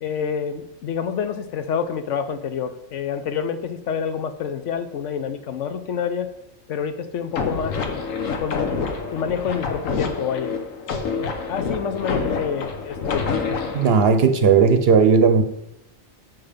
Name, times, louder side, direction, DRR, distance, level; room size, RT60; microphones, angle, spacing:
voice 1, 0.0-6.3 6.7-7.8 8.4-8.6 9.1-10.5 11.5-13.3, left 7 dB, 70° left, 1.0 m, -27 dB
sound 1, 7.3-14.0, left 5 dB, 90° left, 1.3 m, -27 dB
voice 2, 13.7-15.4, right 5 dB, 55° right, 0.8 m, -15 dB
7.4 x 5.8 x 5.1 m
omnidirectional pair, 1.3 m